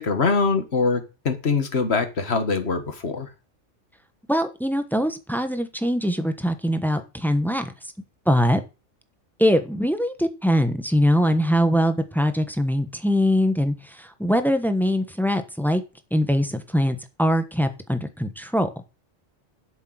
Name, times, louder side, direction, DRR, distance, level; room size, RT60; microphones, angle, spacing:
voice 1, 0.0-3.3, left 4 dB, 60° left, 8 dB, 1.8 m, -23 dB
voice 2, 4.3-7.9 8.3-8.6 9.4-15.8 16.1-18.7, equal, ahead, 8 dB, 1.1 m, -22 dB
8.3 x 6.7 x 7.8 m, 0.31 s
omnidirectional pair, 1.2 m